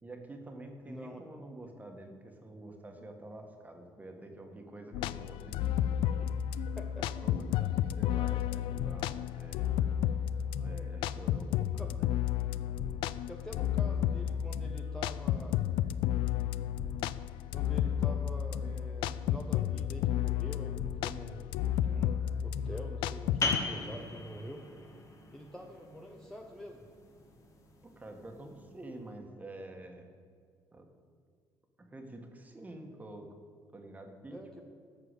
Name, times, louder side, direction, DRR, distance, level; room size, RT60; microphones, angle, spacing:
voice 1, 0.0-5.8 6.2-6.7 7.2-9.7 10.5-12.2 27.8-30.1 30.7-30.8 31.8-33.3 33.7-34.6, right 2 dB, 20° right, 3 dB, 1.6 m, -48 dB
voice 2, 0.9-1.2 6.8-7.1 11.5-11.9 13.3-15.6 17.5-21.5 21.8-24.6 25.3-26.9 34.3-34.6, equal, 5° left, 1 dB, 1.0 m, -46 dB
sound 1, 4.9-23.6, left 11 dB, 85° left, 0.3 m, -32 dB
sound 2, 23.4-28.8, left 3 dB, 35° left, 1.8 m, -39 dB
13.5 x 4.9 x 8.1 m, 2.1 s
cardioid pair, 105°, 9 cm